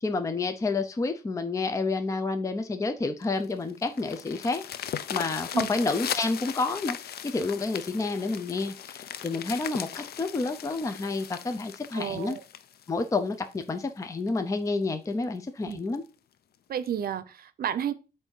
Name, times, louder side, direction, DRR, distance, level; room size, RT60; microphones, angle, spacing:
voice 1, 0.0-4.6 5.1-12.4 12.9-16.0, left 3 dB, 20° left, 0.5 m, -29 dB
sound 1, 3.2-13.7 14.3-14.4 14.8-14.9 15.2-15.3 15.7-16.0 16.9-17.0, left 9 dB, 70° left, 0.5 m, -38 dB
voice 2, 11.9-12.4 15.7-15.8 16.7-17.9, right 9 dB, 65° right, 0.7 m, -31 dB
8.1 x 2.7 x 5.4 m
wide cardioid pair, 140°, 17 cm